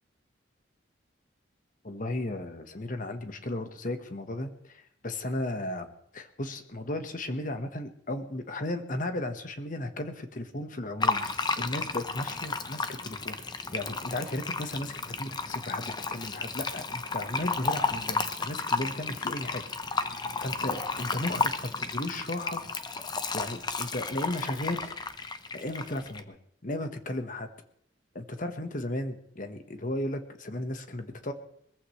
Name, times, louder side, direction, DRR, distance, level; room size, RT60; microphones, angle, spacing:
voice 1, 1.8-11.3 11.6-15.8 16.1-19.6 19.9-22.6 23.3-24.9 25.5-27.5 28.1-31.3, left 1 dB, 45° left, 7 dB, 1.3 m, -35 dB
Fill (with liquid), 11.0-26.2, left 4 dB, 20° left, 0.8 m, -33 dB
21.5 x 15.0 x 3.3 m, 0.69 s
head